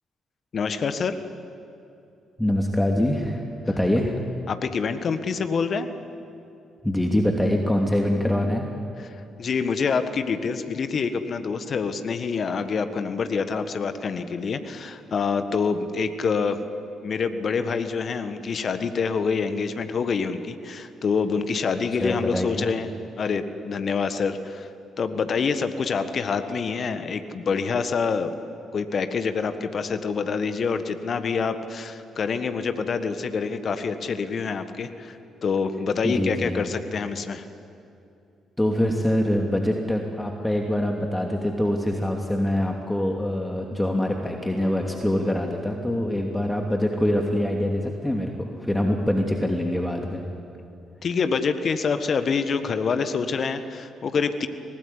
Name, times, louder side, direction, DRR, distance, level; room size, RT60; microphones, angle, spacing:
voice 1, 0.5-1.2 4.5-5.9 9.0-16.6 17.0-22.9 23.2-24.7 25.0-28.3 28.7-37.4 51.0-54.5, left 5 dB, 55° left, 9 dB, 1.5 m, -26 dB
voice 2, 2.4-4.2 6.8-8.7 22.0-22.7 36.0-36.6 38.6-50.2, left 1 dB, 10° left, 2 dB, 2.8 m, -24 dB
sound 1, 44.6-47.0, right 1 dB, 15° right, 5.5 m, -45 dB
24.0 x 19.0 x 10.0 m, 2.7 s
hypercardioid pair, 45°, 0 cm